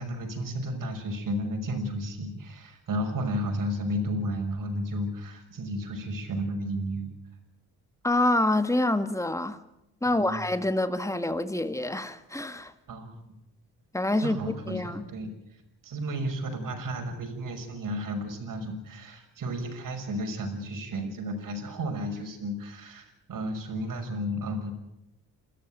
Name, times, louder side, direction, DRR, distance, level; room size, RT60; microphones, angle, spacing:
voice 1, 0.0-7.1 10.1-10.4 12.9-13.2 14.2-24.7, equal, 55° right, 6.1 m, -33 dB
voice 2, 8.0-9.6 10.0-12.7 13.9-14.4 14.7-15.1, left 1 dB, 10° left, 1.9 m, -26 dB
28.5 x 13.5 x 9.0 m
cardioid pair, 100°, 38 cm